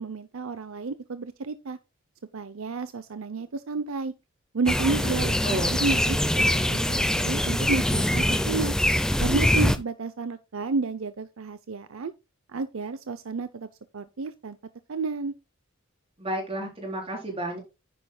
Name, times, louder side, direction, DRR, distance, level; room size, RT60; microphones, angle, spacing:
voice 1, 0.0-1.8 2.3-4.1 4.5-8.8 9.2-12.1 12.5-13.7 13.9-14.6 14.9-15.3, right 4 dB, 65° right, 0.6 m, -31 dB
sound 1, 4.7-9.8, left 1 dB, 5° left, 0.6 m, -23 dB
voice 2, 5.2-5.8 16.2-17.6, right 1 dB, 25° right, 4.2 m, -32 dB
10.0 x 9.7 x 2.3 m
head